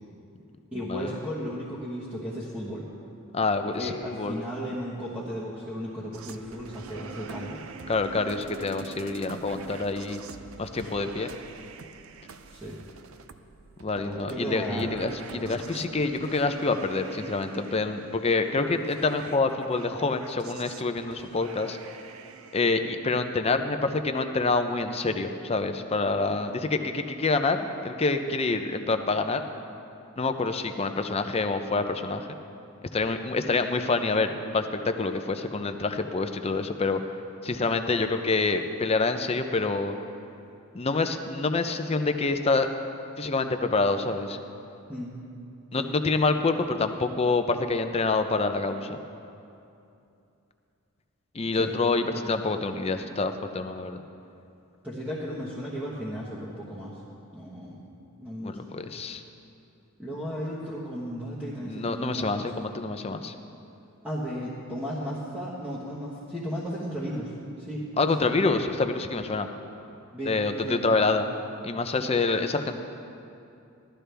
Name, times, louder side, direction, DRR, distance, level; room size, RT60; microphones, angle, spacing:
voice 1, 0.7-2.9 3.8-7.6 12.4-12.8 13.9-14.9 15.3-15.5 44.9-45.1 45.7-45.9 51.6-51.7 52.0-52.3 54.8-57.0 57.3-57.8 58.2-58.7 60.0-62.6 64.0-68.2 70.1-70.8, equal, 5° right, -8 dB, 1.3 m, -35 dB
voice 2, 3.3-4.4 7.9-10.2 10.6-11.3 13.8-21.8 22.5-29.4 30.2-32.4 32.9-37.0 37.4-39.9 40.7-42.7 43.2-44.4 45.7-49.0 51.3-54.0 58.4-59.2 61.6-63.3 68.0-69.5 70.2-71.3 71.6-72.8, left 3 dB, 30° left, 7 dB, 0.5 m, -27 dB
sound 1, 6.1-22.6, right 5 dB, 70° right, 0.5 m, -45 dB
16.5 x 12.5 x 3.4 m, 2.7 s
head